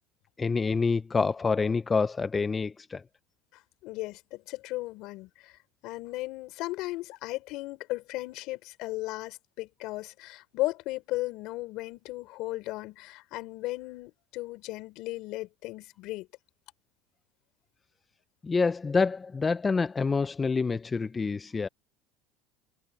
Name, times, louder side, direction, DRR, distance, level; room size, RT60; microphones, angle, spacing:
voice 1, 0.4-3.0 18.4-21.7, left 4 dB, 20° left, 0.4 m, -27 dB
voice 2, 3.8-16.3, left 19 dB, 65° left, 5.1 m, -36 dB
cardioid pair, 130°, 0 cm